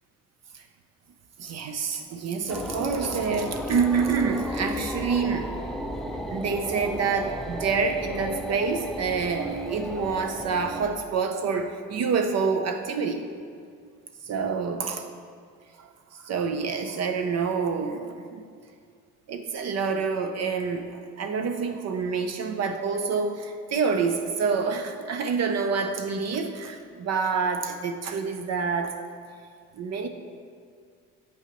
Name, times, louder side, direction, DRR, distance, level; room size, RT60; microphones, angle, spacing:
voice 1, 1.4-5.5 6.3-13.3 14.3-15.0 15.8-18.4 19.3-28.9 29.8-30.1, right 5 dB, 45° right, 6 dB, 0.6 m, -27 dB
sound 1, 2.5-10.8, equal, ahead, 0.4 m, -34 dB
7.9 x 5.4 x 3.0 m, 2.2 s
supercardioid pair, 70°, 37 cm